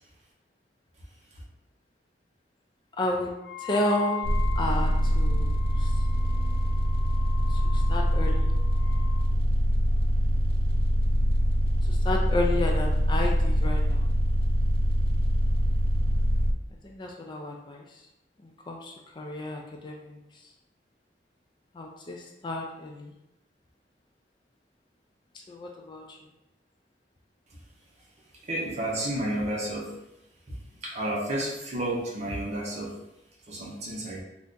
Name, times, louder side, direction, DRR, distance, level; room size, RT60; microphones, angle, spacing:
voice 1, 3.0-3.3 3.6-4.2 4.6-5.9 7.5-8.5 11.8-14.1 16.8-18.0 18.4-20.4 21.7-23.1 25.3-26.2, left 1 dB, 25° left, 1 dB, 0.3 m, -32 dB
Wind instrument woodwind instrument, 3.4-9.2, left 9 dB, 70° left, 0.7 m, -41 dB
sound 1, 4.2-16.5, equal, 55° right, 0.3 m, -24 dB
voice 2, 28.5-30.0 30.5-30.6 30.8-33.0 33.5-34.2, right 1 dB, 40° right, -3 dB, 0.7 m, -31 dB
2.6 x 2.4 x 3.5 m, 0.91 s
head